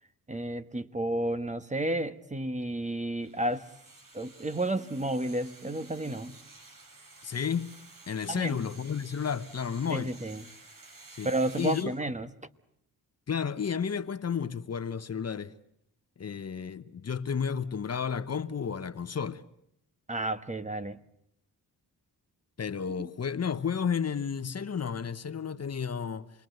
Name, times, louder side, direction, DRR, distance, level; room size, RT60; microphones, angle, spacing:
voice 1, 0.3-3.7 4.1-6.4 8.3-8.6 9.9-10.4 11.2-12.3 20.1-21.0, right 1 dB, 20° right, 1.2 m, -31 dB
sound 1, 3.2-11.8, right 3 dB, 60° right, 5.9 m, -52 dB
voice 2, 7.2-10.1 11.2-11.9 13.3-15.5 16.2-19.4 22.6-26.3, left 7 dB, 45° left, 1.1 m, -32 dB
28.0 x 21.0 x 7.9 m
cardioid pair, 80°, 37 cm